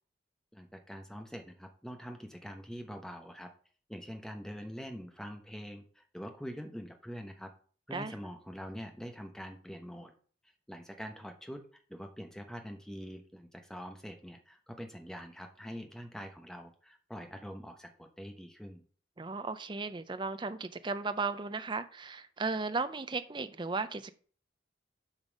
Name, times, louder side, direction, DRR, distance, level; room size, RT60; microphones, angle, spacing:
voice 1, 0.5-3.5 3.9-7.5 7.9-10.1 10.7-11.6 11.9-18.8, equal, 5° left, 0.9 m, -44 dB
voice 2, 19.2-24.1, right 4 dB, 25° right, 0.5 m, -35 dB
7.3 x 5.3 x 5.2 m
head